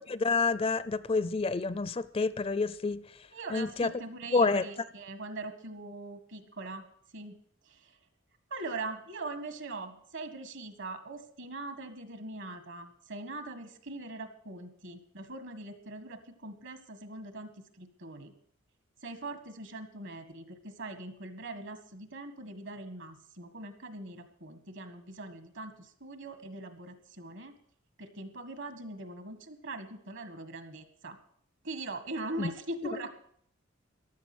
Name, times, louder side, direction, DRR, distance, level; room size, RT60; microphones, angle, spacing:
voice 1, 0.1-3.0 3.5-3.9 4.3-4.6 32.4-32.5, left 4 dB, 30° left, 16 dB, 0.5 m, -28 dB
voice 2, 3.3-6.9 7.1-7.4 7.7-8.0 8.5-18.3 19.0-27.5 28.0-31.2 31.6-33.2, right 2 dB, 65° right, 9 dB, 1.7 m, -42 dB
15.0 x 11.0 x 6.2 m, 0.64 s
head